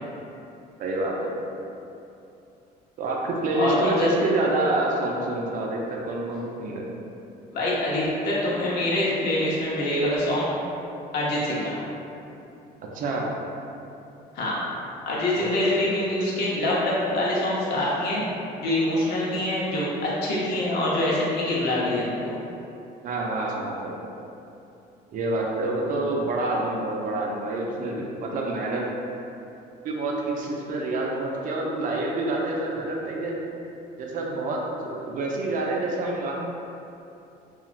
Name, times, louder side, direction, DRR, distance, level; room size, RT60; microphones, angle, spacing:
voice 1, 0.8-1.4 3.0-6.8 12.9-13.3 15.4-15.6 23.0-24.0 25.1-28.8 29.8-33.4 34.0-36.3, right 2 dB, 55° right, -2 dB, 0.4 m, -27 dB
voice 2, 3.6-4.1 7.5-10.5 11.1-11.8 14.3-14.6 15.1-18.2 18.6-22.3, left 1 dB, 75° left, -6 dB, 0.7 m, -25 dB
3.0 x 2.4 x 2.4 m, 2.8 s
cardioid pair, 110°, 17 cm